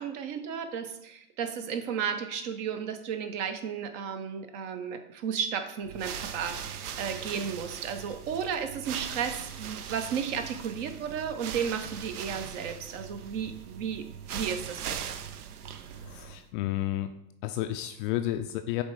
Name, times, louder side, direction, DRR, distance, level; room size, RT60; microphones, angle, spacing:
voice 1, 0.0-15.2, right 7 dB, 50° right, 7 dB, 1.0 m, -34 dB
sound 1, 5.8-16.5, right 8 dB, 75° right, 0.7 m, -40 dB
voice 2, 15.9-17.1 17.4-18.8, left 13 dB, 35° left, 7 dB, 0.4 m, -31 dB
7.7 x 3.4 x 4.7 m, 0.80 s
hypercardioid pair, 100°, 46 cm